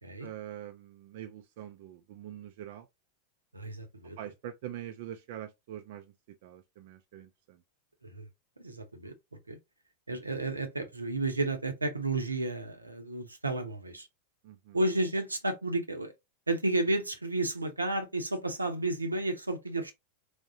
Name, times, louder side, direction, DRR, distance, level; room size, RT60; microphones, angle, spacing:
voice 1, 0.2-2.9 4.2-6.0 6.4-7.3 14.4-14.8, right 11 dB, 50° right, 0.4 m, -44 dB
voice 2, 3.5-4.2 8.0-8.3 8.6-9.1 9.5-9.6 10.1-14.1 14.7-16.1 16.5-19.9, right 2 dB, 80° right, 0.7 m, -32 dB
3.5 x 3.0 x 2.7 m
figure-of-eight pair, 90°, 0 cm